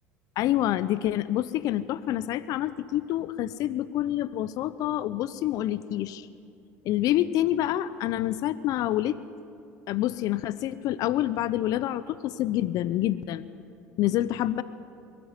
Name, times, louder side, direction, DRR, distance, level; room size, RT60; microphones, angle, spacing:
voice 1, 0.4-6.3 6.8-9.2 9.9-13.5 14.0-14.6, left 13 dB, 60° left, 16 dB, 0.7 m, -27 dB
22.0 x 13.5 x 9.7 m, 2.5 s
hypercardioid pair, 75°, 7 cm